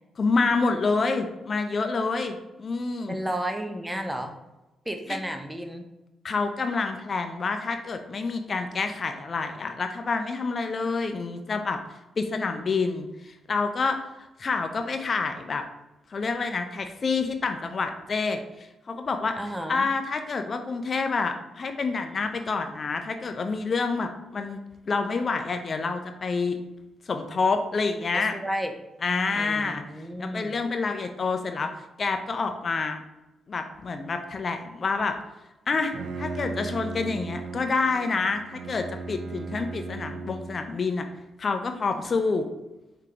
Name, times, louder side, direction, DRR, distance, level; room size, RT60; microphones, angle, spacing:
voice 1, 0.2-3.2 5.1-5.2 6.2-11.8 12.2-14.0 14.4-15.6 16.1-19.4 19.7-24.6 24.9-26.6 27.1-28.3 29.0-29.8 30.2-31.7 32.0-33.0 33.5-35.2 35.7-41.1 41.4-42.5, left 4 dB, 45° left, 6 dB, 0.5 m, -28 dB
voice 2, 3.1-4.3 4.9-5.9 19.3-19.9 28.1-28.7 29.3-30.6, right 1 dB, 10° right, 5 dB, 0.6 m, -32 dB
Bowed string instrument, 35.7-40.8, right 3 dB, 70° right, 0.4 m, -37 dB
4.8 x 3.7 x 2.8 m, 1.0 s
cardioid pair, 70°, 0 cm